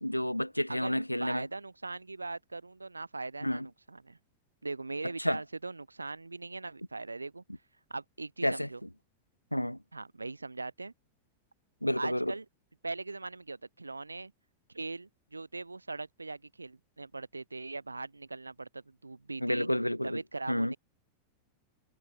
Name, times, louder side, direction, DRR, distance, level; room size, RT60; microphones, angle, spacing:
voice 1, 0.0-1.5 3.4-3.7 5.2-5.4 8.4-8.7 9.5-9.8 11.8-12.3 19.4-20.2 20.5-20.7, equal, 90° left, 1.3 m, -30 dB
voice 2, 0.7-4.2 4.6-7.4 7.9-8.8 9.9-10.9 12.0-12.4 12.8-14.3 14.7-19.7 20.0-20.8, right 3 dB, 80° right, 4.5 m, -40 dB
figure-of-eight pair, 90°, 0 cm